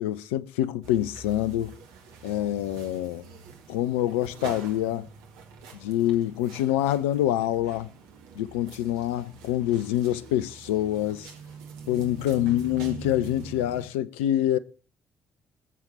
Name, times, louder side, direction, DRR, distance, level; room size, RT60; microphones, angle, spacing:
voice 1, 0.0-1.7 2.2-3.2 3.7-5.1 5.7-7.9 8.3-11.3 11.9-14.6, left 13 dB, 75° left, 0.5 m, -26 dB
sound 1, 0.8-13.9, right 5 dB, 70° right, 1.7 m, -44 dB
21.5 x 7.4 x 4.1 m
figure-of-eight pair, 40°, 7 cm